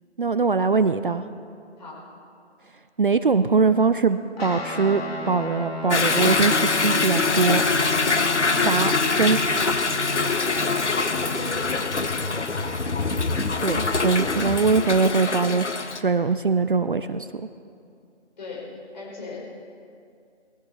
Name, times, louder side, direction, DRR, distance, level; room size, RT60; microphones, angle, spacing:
voice 1, 0.2-1.2 3.0-7.6 8.7-9.7 13.6-15.7 16.0-17.3, right 4 dB, 50° right, 11 dB, 0.5 m, -22 dB
Guitar, 4.4-13.1, left 1 dB, 60° left, 2.5 m, -35 dB
Toilet flush / Drip / Trickle dribble, 5.9-16.0, left 4 dB, 80° left, 1.0 m, -24 dB
voice 2, 8.5-8.8 11.3-11.6 18.4-18.6 18.9-19.5, left 3 dB, 40° left, -4 dB, 4.7 m, -37 dB
20.0 x 13.5 x 4.1 m, 2.4 s
figure-of-eight pair, 155°, 34 cm